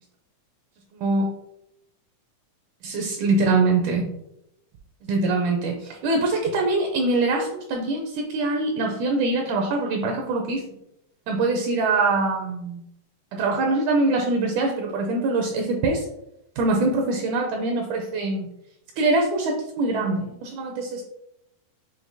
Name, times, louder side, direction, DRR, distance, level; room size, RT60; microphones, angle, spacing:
voice 1, 1.0-1.3 2.8-4.1 5.1-10.7 11.3-12.9 13.3-16.1 16.6-18.5 19.0-21.0, right 3 dB, 80° right, 1 dB, 1.9 m, -23 dB
7.3 x 2.8 x 2.6 m, 0.84 s
omnidirectional pair, 3.9 m